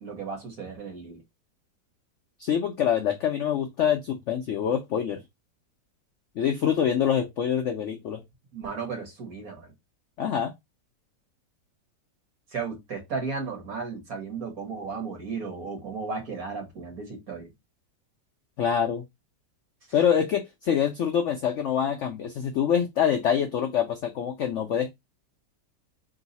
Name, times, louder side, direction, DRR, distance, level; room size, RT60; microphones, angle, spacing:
voice 1, 0.0-1.2 8.5-9.7 12.5-17.5, right 5 dB, 55° right, 2.0 m, -35 dB
voice 2, 2.4-5.2 6.4-8.2 10.2-10.5 18.6-19.0 19.9-24.9, left 8 dB, 75° left, 0.6 m, -25 dB
3.9 x 2.7 x 4.0 m
omnidirectional pair, 1.9 m